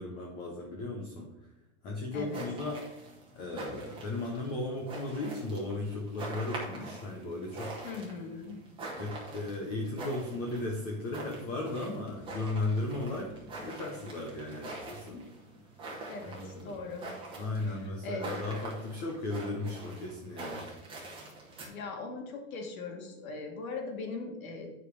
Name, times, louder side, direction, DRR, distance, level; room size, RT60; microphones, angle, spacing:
voice 1, 0.0-1.3 1.8-2.8 3.4-7.8 8.9-13.3 13.6-15.2 16.2-16.9 17.4-20.7, left 2 dB, 10° left, -1 dB, 0.4 m, -36 dB
voice 2, 2.1-2.4 7.8-8.6 16.1-17.1 17.6-18.3 21.7-24.7, left 3 dB, 75° left, 2 dB, 2.4 m, -40 dB
sound 1, 2.2-21.7, right 2 dB, 10° right, 1.7 m, -45 dB
8.2 x 5.0 x 5.9 m, 1.0 s
supercardioid pair, 170°, 42 cm